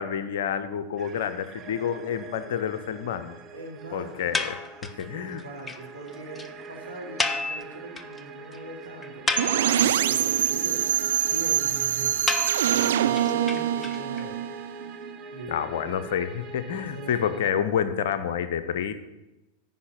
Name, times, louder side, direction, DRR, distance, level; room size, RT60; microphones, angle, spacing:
voice 1, 0.0-3.4 3.9-5.4 15.5-18.9, left 8 dB, 55° left, 12 dB, 0.7 m, -29 dB
sound 1, 1.0-17.5, right 4 dB, 25° right, 0.8 m, -44 dB
voice 2, 3.5-4.3 5.0-6.4 6.7-9.3 9.7-10.8 11.3-12.3 12.6-14.4 15.3-16.0 16.8-17.5, right 2 dB, 85° right, -3 dB, 2.5 m, -41 dB
sound 2, 4.3-5.1 5.4-5.5 5.7-5.8 6.1-6.2 6.4-6.5 7.2-8.2 8.5-8.6 9.0-10.0 12.3-14.2, left 3 dB, 10° left, 0.6 m, -30 dB
sound 3, 9.4-15.2, right 11 dB, 60° right, 0.4 m, -24 dB
9.5 x 5.5 x 7.9 m, 1.0 s
figure-of-eight pair, 90°, 0 cm